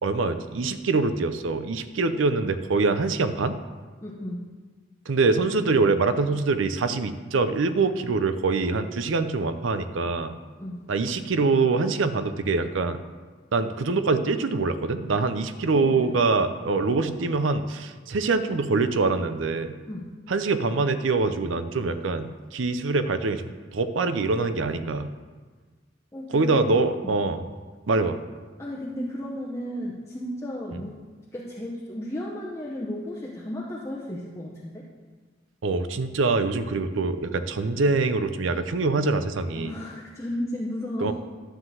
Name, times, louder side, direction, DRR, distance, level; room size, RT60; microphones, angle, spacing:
voice 1, 0.0-3.6 5.1-10.4 10.9-13.0 13.5-19.7 20.3-25.1 26.3-27.4 27.9-28.2 35.6-39.7 41.0-41.1, right 3 dB, 70° right, 10 dB, 0.6 m, -24 dB
voice 2, 4.0-4.4 10.6-10.8 15.7-16.2 19.9-20.1 26.1-27.1 28.6-31.0 31.3-34.9 39.5-41.1, left 1 dB, 15° left, -5 dB, 0.8 m, -34 dB
11.5 x 3.9 x 7.7 m, 1.4 s
head